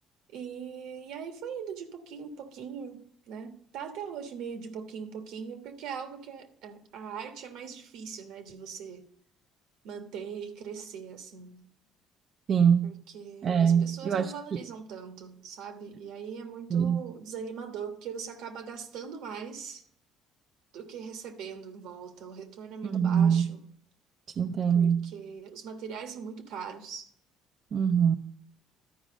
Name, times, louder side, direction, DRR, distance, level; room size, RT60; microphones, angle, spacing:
voice 1, 0.3-9.0 9.8-11.7 12.8-19.8 20.7-23.6 24.7-27.1, right 6 dB, 80° right, 6 dB, 1.2 m, -41 dB
voice 2, 12.5-12.9 13.4-14.3 16.7-17.0 22.8-23.5 24.4-25.1 27.7-28.2, right 7 dB, 50° right, 6 dB, 0.5 m, -23 dB
12.0 x 4.9 x 5.1 m, 0.66 s
supercardioid pair, 85°, 0 cm